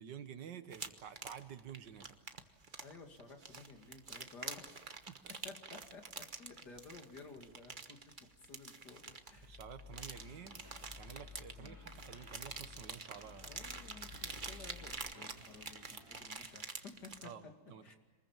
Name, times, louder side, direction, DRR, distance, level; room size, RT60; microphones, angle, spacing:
voice 1, 0.0-2.2 5.1-5.2 9.4-10.6 11.0-13.6 17.2-18.0, right 8 dB, 90° right, 10 dB, 1.9 m, -50 dB
sound 1, 0.7-17.3, right 4 dB, 30° right, 1.2 m, -47 dB
voice 2, 2.8-4.7 5.4-8.1 8.4-9.6 11.5-11.8 13.4-17.3 17.8-18.0, left 4 dB, 70° left, 4 dB, 3.0 m, -54 dB
sound 2, 9.3-14.9, left 6 dB, 30° left, 3.2 m, -55 dB
sound 3, 10.1-16.2, left 1 dB, 10° left, 7.3 m, -61 dB
27.5 x 21.0 x 7.4 m, 1.2 s
omnidirectional pair, 1.8 m